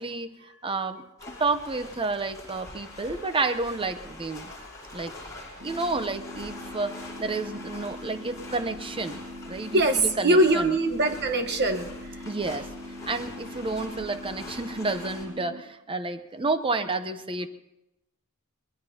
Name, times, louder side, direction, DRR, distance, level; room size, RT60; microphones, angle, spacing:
voice 1, 0.0-4.5 4.9-5.1 5.6-10.7 12.3-12.7 13.1-17.5, right 3 dB, 25° right, 10 dB, 0.7 m, -30 dB
sound 1, 1.2-15.3, left 2 dB, 15° left, 5.0 m, -44 dB
voice 2, 4.5-5.1 5.5-5.6 9.7-12.2, right 1 dB, 50° right, 5 dB, 1.2 m, -24 dB
sound 2, 5.6-15.6, left 1 dB, 85° right, 1.5 m, -42 dB
24.5 x 20.0 x 2.8 m, 0.94 s
head